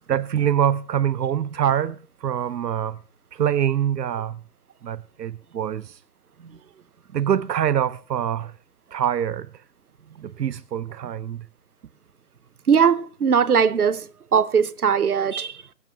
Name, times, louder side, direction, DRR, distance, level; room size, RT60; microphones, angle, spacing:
voice 1, 0.1-3.0 3.3-4.4 4.8-6.0 7.1-8.5 8.9-9.6 10.2-11.5, right 9 dB, 85° right, 0.6 m, -24 dB
voice 2, 12.7-14.1 14.3-15.6, right 7 dB, 65° right, 1.0 m, -19 dB
23.5 x 9.1 x 3.3 m
figure-of-eight pair, 160°, 48 cm